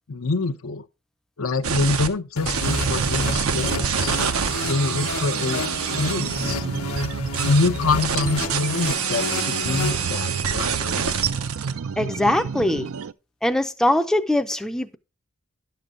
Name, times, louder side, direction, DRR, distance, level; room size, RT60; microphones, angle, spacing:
voice 1, 0.1-0.8 1.4-4.2 4.6-5.6 6.0-6.6 7.4-11.1, left 3 dB, 75° left, 0.7 m, -25 dB
sound 1, 1.6-2.1 2.4-6.5 7.3-11.7, right 7 dB, 85° right, 0.9 m, -27 dB
sound 2, 2.4-10.5, left 3 dB, 90° left, 1.1 m, -31 dB
sound 3, 2.6-13.1, right 6 dB, 70° right, 0.4 m, -31 dB
voice 2, 12.0-12.9 13.4-15.0, left 1 dB, 5° left, 0.5 m, -22 dB
11.0 x 6.8 x 3.7 m
head